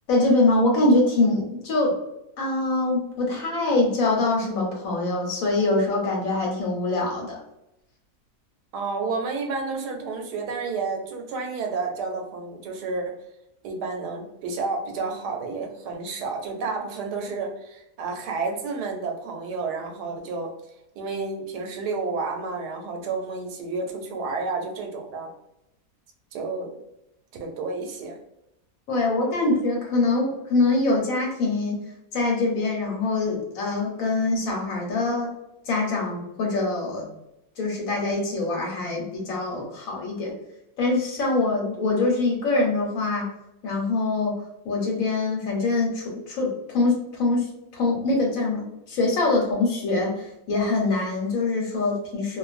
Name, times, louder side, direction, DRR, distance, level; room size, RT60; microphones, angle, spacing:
voice 1, 0.1-1.9 2.4-7.4 28.9-31.8 32.1-35.3 35.7-37.1 37.6-40.3 40.8-43.3 43.6-44.4 44.6-52.4, left 2 dB, 65° left, -1 dB, 1.1 m, -24 dB
voice 2, 8.7-13.2 13.6-20.5 21.0-25.3 26.3-26.8 27.4-28.2, right 4 dB, 85° right, 3 dB, 1.2 m, -30 dB
2.5 x 2.4 x 2.4 m, 0.86 s
omnidirectional pair, 1.7 m